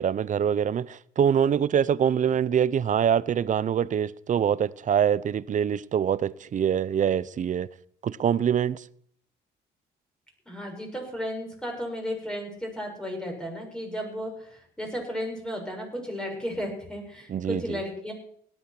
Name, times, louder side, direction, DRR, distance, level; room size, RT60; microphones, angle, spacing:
voice 1, 0.0-7.7 8.0-8.8 17.3-17.8, right 8 dB, 45° right, 0.7 m, -24 dB
voice 2, 10.5-18.1, equal, 5° left, 7.1 m, -34 dB
17.5 x 12.0 x 6.2 m
cardioid pair, 85°, 18 cm